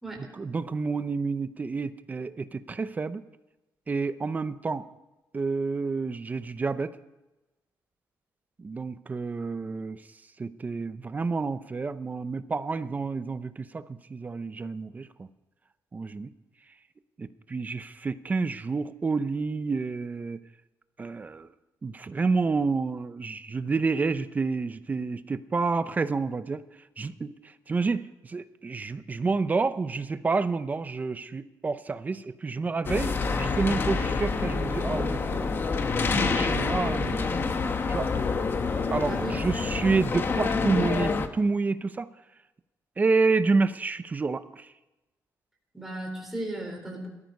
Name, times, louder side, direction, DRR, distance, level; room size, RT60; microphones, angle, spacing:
voice 1, 0.3-3.2 3.9-4.9 5.3-7.0 8.6-10.0 10.4-15.3 15.9-16.3 17.2-20.4 21.0-21.5 21.8-26.6 27.0-27.3 27.7-35.5 36.1-37.3 37.9-38.1 38.9-42.1 43.0-44.7, right 4 dB, 25° right, 13 dB, 0.7 m, -29 dB
sound 1, 32.9-41.3, left 4 dB, 35° left, 1.1 m, -27 dB
voice 2, 45.7-47.1, right 1 dB, 5° right, -1 dB, 3.8 m, -36 dB
18.0 x 13.5 x 5.3 m, 1.0 s
wide cardioid pair, 160°, 7 cm